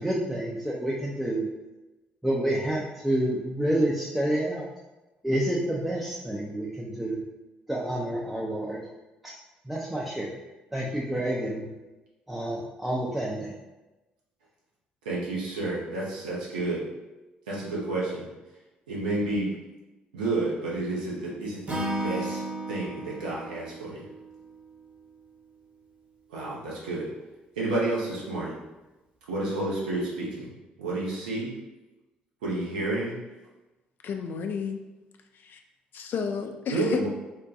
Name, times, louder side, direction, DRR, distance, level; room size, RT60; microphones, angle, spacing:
voice 1, 0.0-1.4 2.2-4.7 5.2-7.2 7.7-8.8 9.7-10.3 10.7-11.7 12.3-13.5, right 1 dB, 5° right, -5 dB, 0.5 m, -28 dB
voice 2, 15.0-16.8 17.5-18.3 18.9-19.5 20.1-24.1 26.3-27.1 27.6-28.6 29.3-31.5 32.4-33.1 36.7-37.1, right 2 dB, 75° right, -5 dB, 0.7 m, -30 dB
Acoustic guitar / Strum, 21.7-24.9, right 1 dB, 35° right, 0.8 m, -34 dB
voice 3, 34.0-34.8 35.3-35.6 35.9-37.0, left 6 dB, 45° left, 5 dB, 0.3 m, -32 dB
3.5 x 2.2 x 2.6 m, 1.1 s
figure-of-eight pair, 45°, 5 cm